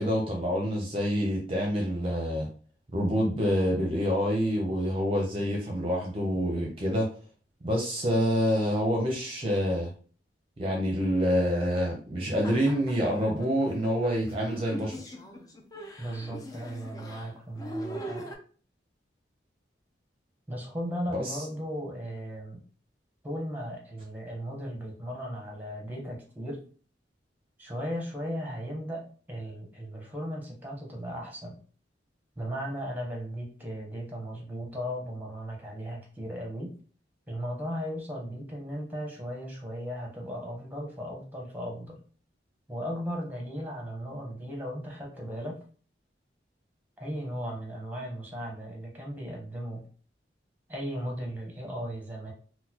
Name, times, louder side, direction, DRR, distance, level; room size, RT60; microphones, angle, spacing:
voice 1, 0.0-2.5 2.9-7.1 7.6-9.9 10.6-15.0 21.1-21.4, equal, 30° right, 0 dB, 0.6 m, -27 dB
sound 1, 12.3-18.4, equal, 20° left, 0.4 m, -41 dB
voice 2, 16.0-18.3 20.5-22.6 23.2-26.6 27.6-31.6 32.4-36.7 37.3-42.0 42.7-45.6 47.0-49.8 50.7-52.3, equal, 10° right, 0 dB, 0.9 m, -36 dB
3.9 x 2.1 x 2.8 m, 0.41 s
head